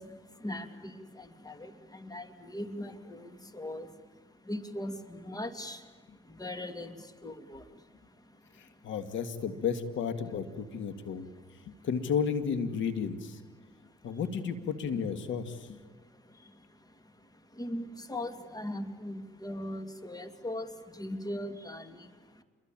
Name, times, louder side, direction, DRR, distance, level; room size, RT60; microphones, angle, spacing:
voice 1, 0.0-8.9 10.9-11.9 13.6-14.2 15.9-22.4, left 1 dB, 20° left, 9 dB, 2.5 m, -41 dB
voice 2, 8.6-11.3 11.8-13.4 14.0-15.8, left 6 dB, 75° left, 10 dB, 2.2 m, -33 dB
29.0 x 22.5 x 9.0 m, 1.4 s
cardioid pair, 90°, 20 cm